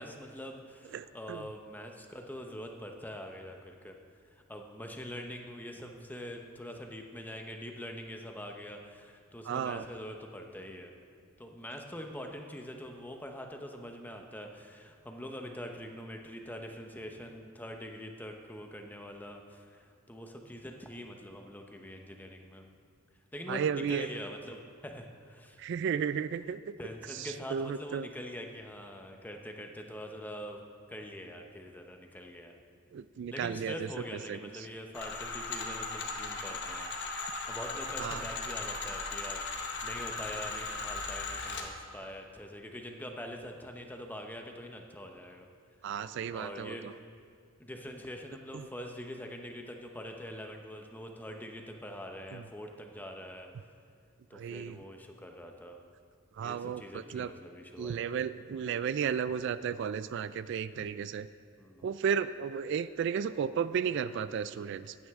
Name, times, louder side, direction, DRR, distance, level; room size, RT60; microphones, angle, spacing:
voice 1, 0.0-4.0 4.5-10.9 11.4-22.7 23.3-25.6 26.8-32.5 33.3-36.9 37.5-45.5 46.3-47.0 47.6-53.5 54.3-55.8 56.4-58.1 61.6-61.9, equal, 10° left, 3 dB, 0.8 m, -44 dB
voice 2, 0.9-1.4 9.5-9.8 23.5-24.1 25.6-26.6 27.2-28.1 32.9-33.7 34.3-34.4 38.0-38.2 45.8-46.9 48.5-48.7 52.3-52.4 54.3-54.8 56.4-57.3 57.8-61.3 61.8-64.9, right 7 dB, 60° right, 14 dB, 0.3 m, -33 dB
sound 1, 34.9-41.7, left 3 dB, 60° left, 1.3 m, -37 dB
14.5 x 9.5 x 3.6 m, 2.3 s
head